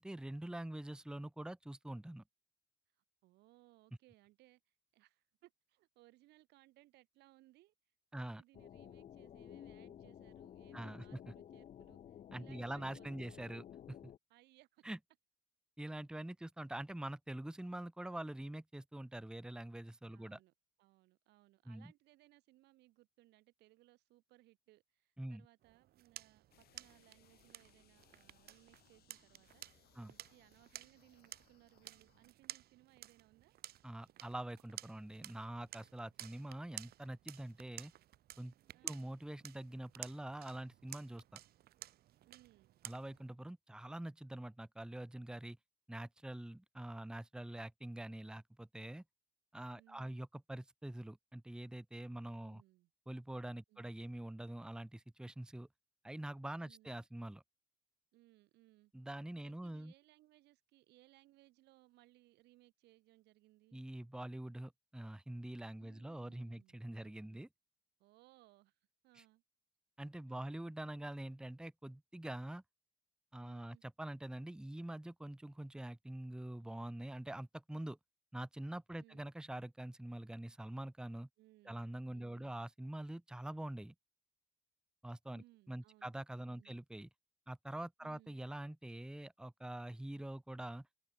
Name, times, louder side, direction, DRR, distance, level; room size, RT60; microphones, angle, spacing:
voice 1, 0.0-2.2 8.1-8.4 10.7-11.3 12.3-14.1 14.8-15.0 15.8-20.4 21.7-21.9 25.2-25.4 29.9-30.1 33.8-37.9 38.4-38.5 38.8-41.4 42.8-45.6 45.9-49.0 49.5-52.6 53.1-55.7 56.0-57.4 58.9-59.9 63.7-67.5 69.1-69.2 70.0-72.6 73.3-78.0 78.3-81.3 81.6-83.9 85.0-87.1 87.5-90.9, right 1 dB, 5° right, 1.2 m, -45 dB
voice 2, 3.2-7.7 8.1-13.3 14.3-14.8 20.1-20.5 20.8-33.6 38.7-39.1 42.3-42.8 49.7-50.2 52.4-52.9 53.7-53.9 56.6-56.9 58.1-58.9 59.4-63.8 65.8-67.4 68.0-68.8 69.0-69.4 70.3-70.6 73.4-73.8 79.0-79.3 81.4-82.6 85.3-86.1 86.5-86.8 88.0-88.4, right 18 dB, 85° right, 4.1 m, -67 dB
sound 1, 8.5-14.2, left 10 dB, 45° left, 0.6 m, -54 dB
sound 2, 25.6-43.3, right 13 dB, 65° right, 2.1 m, -53 dB
sound 3, 26.5-32.3, left 13 dB, 65° left, 4.5 m, -71 dB
cardioid pair, 110°, 17 cm